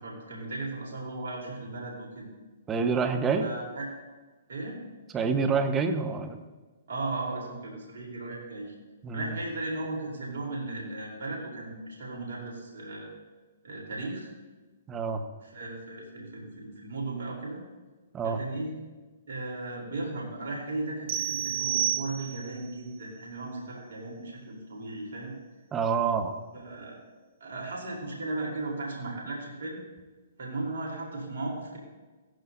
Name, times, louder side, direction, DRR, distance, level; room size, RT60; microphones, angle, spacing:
voice 1, 0.0-2.3 3.4-3.9 4.5-4.8 6.9-8.7 9.1-13.1 13.6-14.3 15.4-17.6 18.2-18.7 19.3-25.4 26.5-27.0 27.4-29.8 30.4-31.8, right 2 dB, 75° right, -2 dB, 3.9 m, -36 dB
voice 2, 2.7-3.5 5.1-6.4 9.0-9.3 14.9-15.2 18.1-18.4 25.7-26.3, right 5 dB, 20° right, 6 dB, 1.3 m, -27 dB
sound 1, 21.1-22.6, right 11 dB, 60° right, 1.7 m, -30 dB
16.5 x 14.0 x 2.8 m, 1.3 s
hypercardioid pair, 130°, 0 cm